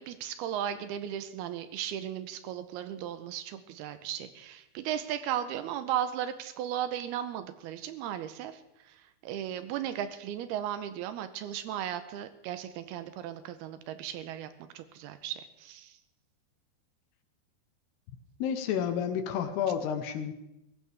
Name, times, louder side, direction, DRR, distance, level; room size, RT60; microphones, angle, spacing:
voice 1, 0.0-16.0, right 10 dB, 80° right, 11 dB, 2.4 m, -36 dB
voice 2, 18.4-20.3, left 8 dB, 70° left, 8 dB, 2.8 m, -30 dB
22.0 x 16.5 x 3.5 m, 0.89 s
omnidirectional pair, 5.3 m